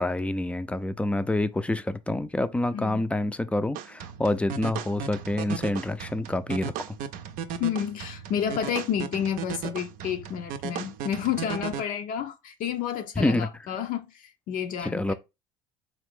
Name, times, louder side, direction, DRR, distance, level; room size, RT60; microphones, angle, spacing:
voice 1, 0.0-6.7 13.2-13.5 14.8-15.1, left 1 dB, 10° left, 0.4 m, -27 dB
voice 2, 2.7-3.0 7.6-15.1, left 9 dB, 60° left, 0.6 m, -30 dB
sound 1, 3.8-11.8, right 8 dB, 60° right, 0.5 m, -36 dB
3.8 x 2.5 x 3.6 m
hypercardioid pair, 70°, 16 cm